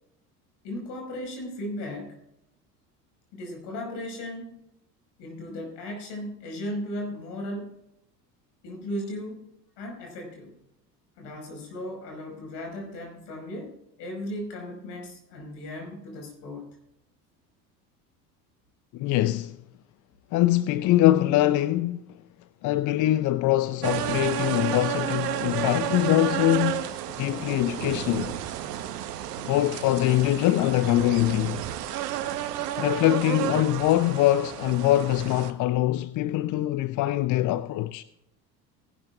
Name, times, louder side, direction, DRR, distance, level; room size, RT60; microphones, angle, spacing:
voice 1, 0.6-2.2 3.3-4.6 5.2-7.8 8.6-9.5 9.8-10.6 11.2-16.7, left 1 dB, 55° left, 5.4 m, -36 dB
voice 2, 18.9-19.6 20.3-22.1 22.6-26.9 27.2-28.4 29.5-31.6 32.8-38.0, left 15 dB, 40° left, 0.6 m, -23 dB
sound 1, 23.8-35.5, right 12 dB, 75° right, 1.2 m, -31 dB
19.0 x 11.5 x 2.4 m
hypercardioid pair, 70°, 48 cm